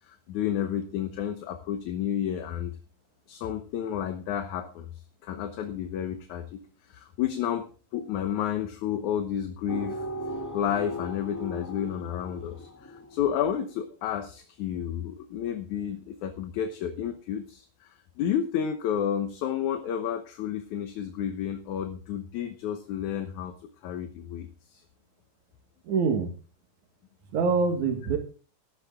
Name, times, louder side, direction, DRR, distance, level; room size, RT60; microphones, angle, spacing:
voice 1, 0.1-2.7 3.3-4.9 5.2-6.6 6.9-7.7 7.9-10.0 10.5-23.5 23.8-24.8, left 9 dB, 70° left, 7 dB, 2.3 m, -31 dB
sound 1, 9.7-13.7, equal, 30° left, 0.3 m, -38 dB
voice 2, 25.9-26.3 27.3-28.2, right 5 dB, 65° right, 5 dB, 3.2 m, -25 dB
13.0 x 12.5 x 3.7 m, 0.37 s
omnidirectional pair, 3.7 m